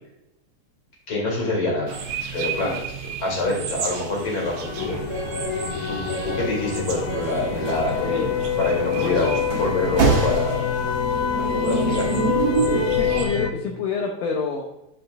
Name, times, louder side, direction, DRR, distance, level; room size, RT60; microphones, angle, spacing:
voice 1, 1.1-2.0 2.3-2.8 3.2-5.0 5.9-8.2 8.6-9.3 9.6-10.7 11.4-12.1, left 2 dB, 45° left, -2 dB, 2.9 m, -26 dB
sound 1, 1.9-13.3, right 7 dB, 70° right, 2.3 m, -35 dB
sound 2, 3.7-13.5, left 8 dB, 90° left, 2.1 m, -27 dB
sound 3, 4.6-13.4, right 4 dB, 50° right, 1.8 m, -27 dB
voice 2, 8.9-9.6 12.7-14.7, left 5 dB, 70° left, 0 dB, 1.8 m, -27 dB
10.0 x 4.9 x 2.5 m, 0.89 s
omnidirectional pair, 3.5 m